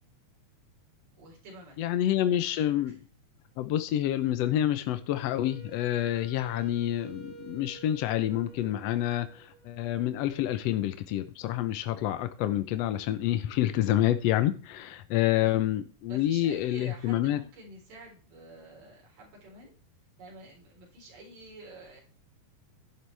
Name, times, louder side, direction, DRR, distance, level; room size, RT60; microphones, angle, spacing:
voice 1, 1.2-2.0 2.3-2.4 2.9-3.0 15.4-15.7 16.1-19.7 20.2-22.0, right 2 dB, 80° right, -2 dB, 5.7 m, -49 dB
voice 2, 1.8-3.0 3.6-17.4, left 12 dB, 75° left, 11 dB, 1.5 m, -28 dB
Wind instrument woodwind instrument, 5.4-10.4, right 4 dB, 5° left, 3.0 m, -50 dB
11.5 x 11.5 x 3.4 m, 0.38 s
omnidirectional pair, 3.8 m